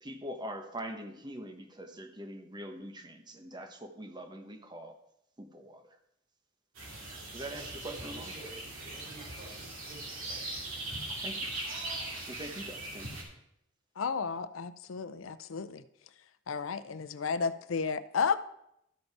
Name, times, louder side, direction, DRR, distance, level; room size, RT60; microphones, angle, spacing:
voice 1, 0.0-5.0 5.4-5.8 7.3-8.3 11.2-11.5 12.3-13.2, right 1 dB, 20° right, 5 dB, 1.0 m, -43 dB
sound 1, 6.7-13.2, right 2 dB, 80° right, 2.7 m, -40 dB
voice 2, 7.5-10.6, right 2 dB, 45° right, -7 dB, 4.4 m, -51 dB
voice 3, 14.0-15.8 16.5-18.4, left 5 dB, 85° left, 13 dB, 0.6 m, -32 dB
13.5 x 5.2 x 4.7 m, 0.78 s
head